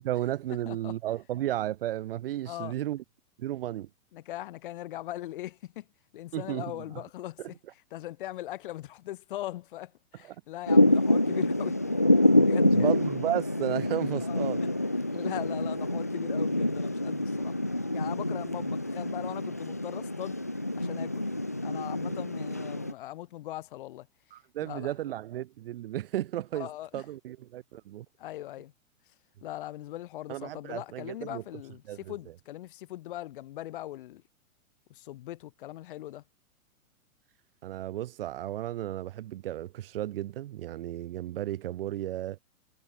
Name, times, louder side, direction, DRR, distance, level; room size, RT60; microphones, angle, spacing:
voice 1, 0.0-3.0 3.4-3.9 6.3-6.8 7.4-7.5 10.2-10.4 12.6-14.6 24.3-28.1 30.3-31.4 31.9-32.2 37.6-42.4, right 13 dB, 40° right, 5.1 m, -34 dB
voice 2, 4.1-5.8 6.1-7.5 7.9-11.8 12.4-12.9 14.2-14.7 15.1-17.6 17.9-20.4 20.7-21.3 21.6-24.1 24.6-24.9 26.6-27.0 28.2-28.7 29.4-34.2 34.9-36.2, left 14 dB, 35° left, 4.2 m, -40 dB
Thunder / Rain, 10.7-22.9, left 1 dB, 10° left, 0.4 m, -26 dB
hypercardioid pair, 175°, 42 cm